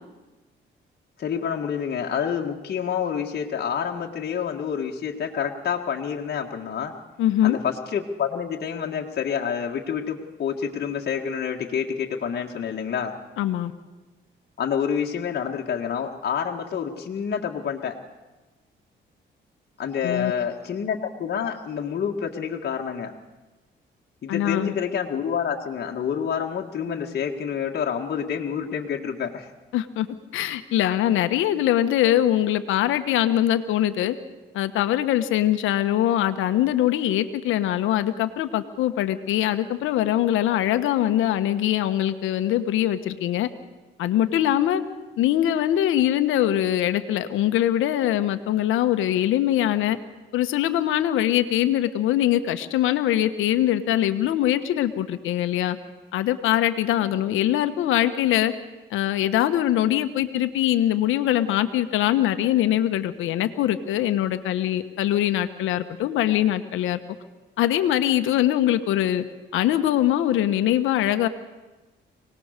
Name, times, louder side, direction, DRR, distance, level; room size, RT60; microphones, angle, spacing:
voice 1, 1.2-6.9 7.4-13.1 14.6-18.0 19.8-23.1 24.2-29.5 57.0-57.1, left 7 dB, 55° left, 0 dB, 2.0 m, -28 dB
voice 2, 7.2-7.6 13.4-13.7 20.0-20.3 24.3-24.7 29.7-30.1 30.3-34.2 34.5-43.5 44.0-44.8 45.2-50.0 50.3-55.8 56.1-58.5 58.9-67.0 67.6-69.2 69.5-71.3, left 12 dB, 90° left, 9 dB, 1.3 m, -22 dB
24.5 x 19.0 x 6.7 m, 1.2 s
cardioid pair, 90°, 20 cm